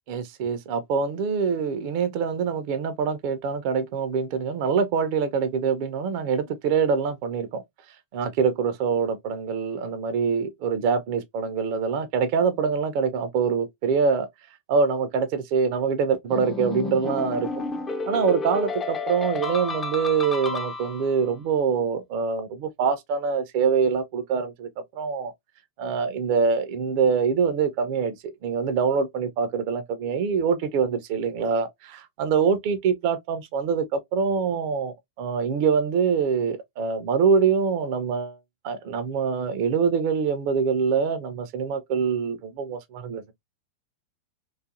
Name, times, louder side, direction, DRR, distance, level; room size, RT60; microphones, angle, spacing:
voice 1, 0.1-7.6 8.1-14.3 14.7-17.5 18.1-25.3 25.8-38.4 38.6-43.3, right 6 dB, 45° right, 0.4 m, -24 dB
sound 1, 16.3-21.2, left 3 dB, 20° left, 0.4 m, -31 dB
2.5 x 2.4 x 2.3 m
figure-of-eight pair, 90°, 0 cm